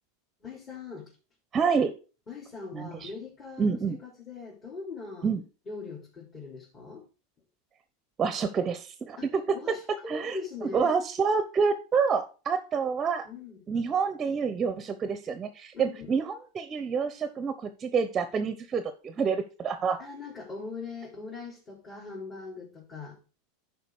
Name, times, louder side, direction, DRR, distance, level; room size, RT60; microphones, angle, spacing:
voice 1, 0.4-1.1 2.3-5.3 5.7-7.0 9.2-9.3 9.5-11.0 13.2-13.6 15.7-16.1 20.0-23.2, left 4 dB, 30° left, -4 dB, 3.7 m, -41 dB
voice 2, 1.5-1.9 2.7-3.1 3.6-4.0 5.2-5.4 8.2-9.6 10.1-13.3 13.7-20.0, right 5 dB, 30° right, 11 dB, 0.8 m, -28 dB
11.0 x 4.8 x 4.8 m, 0.35 s
hypercardioid pair, 90°, 0 cm